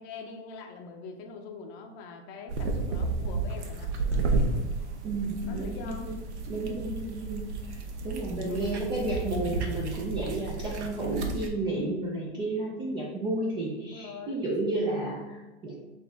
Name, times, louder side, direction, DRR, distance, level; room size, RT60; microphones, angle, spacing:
voice 1, 0.0-3.9 4.3-4.4 5.4-6.2 8.5-8.8 13.9-14.4, left 5 dB, 30° left, 3 dB, 0.6 m, -43 dB
sound 1, 2.5-11.5, right 3 dB, 80° right, 0.9 m, -32 dB
voice 2, 5.0-6.2 6.5-15.7, right 2 dB, 15° right, -3 dB, 0.3 m, -32 dB
6.1 x 2.6 x 3.4 m, 1.2 s
hypercardioid pair, 140°, 34 cm